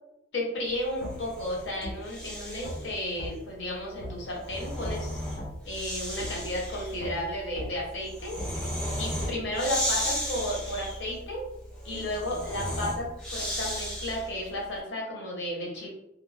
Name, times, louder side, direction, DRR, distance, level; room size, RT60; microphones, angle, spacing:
voice 1, 0.3-5.4 5.6-8.4 9.0-11.4 11.8-15.9, left 1 dB, 90° left, -3 dB, 0.9 m, -33 dB
Breathing, 0.9-2.9 4.2-14.4, equal, 5° left, 0.7 m, -35 dB
sound 1, 1.0-1.1 1.8-2.0 2.6-2.8 3.2-3.3 4.0-4.1 4.8-5.0 5.4-5.5 6.2-6.3 7.0-7.1 7.5-7.7 8.4-8.5 9.2-9.3, left 1 dB, 60° left, 0.6 m, -36 dB
2.5 x 2.1 x 3.3 m, 0.89 s
head